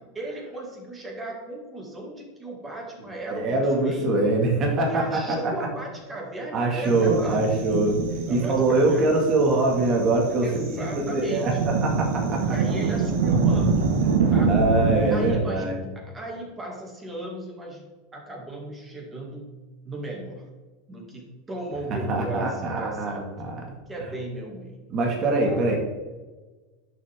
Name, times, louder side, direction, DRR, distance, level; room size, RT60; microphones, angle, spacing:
voice 1, 0.1-4.1 4.9-7.4 8.3-9.4 10.4-11.6 12.4-13.9 14.3-14.5 15.1-17.9 18.1-19.5 19.8-20.5 20.9-23.3 23.9-24.9 25.4-25.6, right 1 dB, 15° right, -1 dB, 2.5 m, -36 dB
voice 2, 3.3-5.5 6.5-8.0 8.3-12.5 14.4-15.8 22.1-23.8 24.9-25.8, right 2 dB, 35° right, 0 dB, 2.1 m, -23 dB
sound 1, 6.8-15.3, right 4 dB, 80° right, 1.5 m, -25 dB
10.5 x 7.3 x 3.7 m, 1.2 s
supercardioid pair, 145°, 0 cm